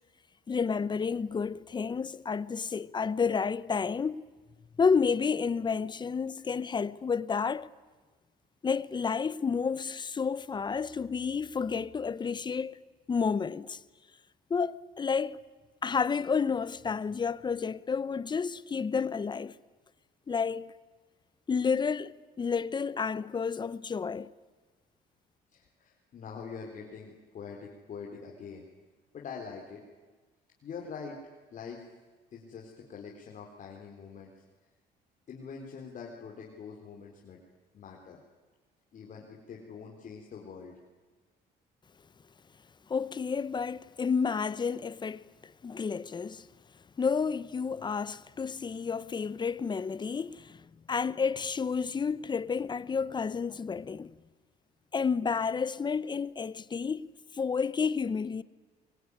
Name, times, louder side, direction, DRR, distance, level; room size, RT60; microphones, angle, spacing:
voice 1, 0.5-4.2 4.8-7.7 8.6-12.8 13.1-13.8 14.5-15.4 15.8-19.6 20.3-20.7 21.5-24.3 42.9-46.5 47.0-54.1 54.9-57.1 57.3-58.4, left 5 dB, 25° left, 0.9 m, -30 dB
voice 2, 25.5-28.6 29.1-29.8 30.6-31.2 31.5-31.8 32.3-34.3 35.3-37.4 37.7-38.2 38.9-40.8, left 5 dB, 50° left, 4.1 m, -44 dB
24.0 x 23.0 x 10.0 m
cardioid pair, 110°, 17 cm